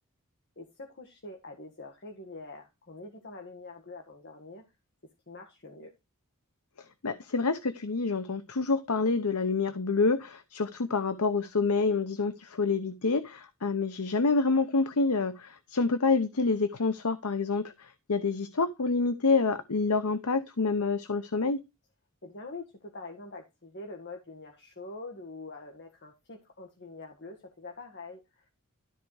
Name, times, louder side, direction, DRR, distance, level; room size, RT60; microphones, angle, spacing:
voice 1, 0.6-4.6 5.3-5.9 22.2-28.4, left 3 dB, 50° left, 1.7 m, -45 dB
voice 2, 7.0-21.6, left 4 dB, 90° left, 0.9 m, -27 dB
13.0 x 4.6 x 4.8 m
head